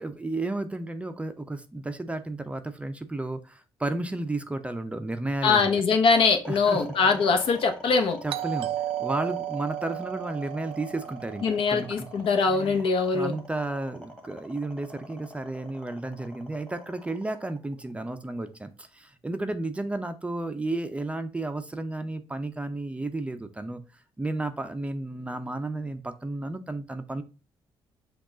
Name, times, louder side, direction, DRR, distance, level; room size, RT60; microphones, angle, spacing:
voice 1, 0.0-5.7 6.5-7.2 8.2-8.7 9.0-12.1 12.5-12.8 13.1-23.8 24.2-27.2, right 2 dB, 15° right, 8 dB, 0.5 m, -33 dB
voice 2, 5.4-8.2 11.4-13.3, left 4 dB, 65° left, 6 dB, 0.9 m, -22 dB
sound 1, 6.4-18.7, left 1 dB, 10° left, 1.3 m, -44 dB
Doorbell, 8.3-12.9, right 14 dB, 70° right, 0.4 m, -35 dB
6.0 x 2.4 x 3.7 m, 0.32 s
cardioid pair, 110°, 10 cm